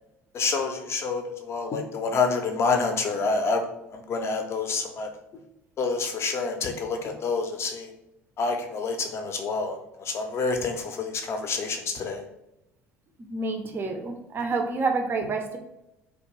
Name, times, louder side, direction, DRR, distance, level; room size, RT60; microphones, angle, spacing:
voice 1, 0.3-3.6 3.9-5.1 5.8-7.9 8.4-12.2, left 4 dB, 35° left, 4 dB, 0.5 m, -28 dB
voice 2, 13.2-15.6, right 3 dB, 30° right, 4 dB, 0.4 m, -28 dB
2.5 x 2.1 x 3.0 m, 0.86 s
figure-of-eight pair, 60°, 7 cm